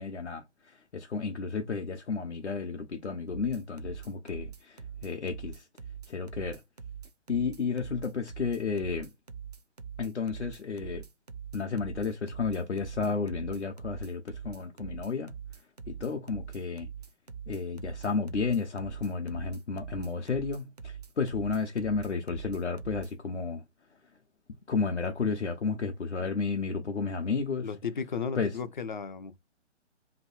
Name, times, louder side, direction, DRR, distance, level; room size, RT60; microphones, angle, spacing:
voice 1, 0.0-5.7 6.1-6.6 7.3-9.1 10.0-11.0 11.5-15.4 15.9-16.9 17.5-23.6 24.7-27.7 28.3-28.5, left 5 dB, 65° left, 0.9 m, -32 dB
sound 1, 3.3-23.1, right 7 dB, 35° right, 0.4 m, -43 dB
voice 2, 27.6-29.4, left 6 dB, 40° left, 0.5 m, -35 dB
3.0 x 2.6 x 4.3 m
figure-of-eight pair, 140°, 36 cm